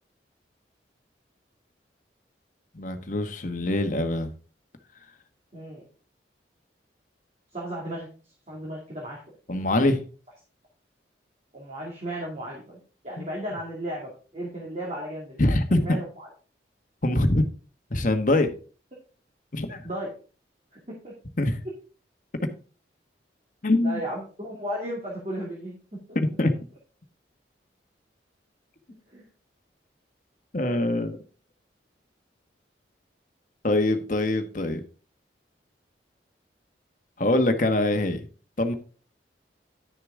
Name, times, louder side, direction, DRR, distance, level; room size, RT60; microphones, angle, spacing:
voice 1, 2.7-4.3 9.5-10.0 13.2-13.3 15.4-15.9 17.0-17.4 17.9-18.5 19.5-19.8 21.4-21.6 23.6-24.0 26.1-26.5 30.5-31.2 33.6-34.8 37.2-38.3 38.6-38.7, left 1 dB, 45° left, 7 dB, 1.1 m, -23 dB
voice 2, 5.5-5.8 7.5-8.1 8.5-9.2 11.5-12.8 13.0-15.4 15.8-16.3 19.8-20.1 20.7-21.1 23.8-25.8 29.1-29.2, right 1 dB, 35° right, -4 dB, 2.5 m, -35 dB
11.0 x 6.7 x 3.6 m, 0.38 s
head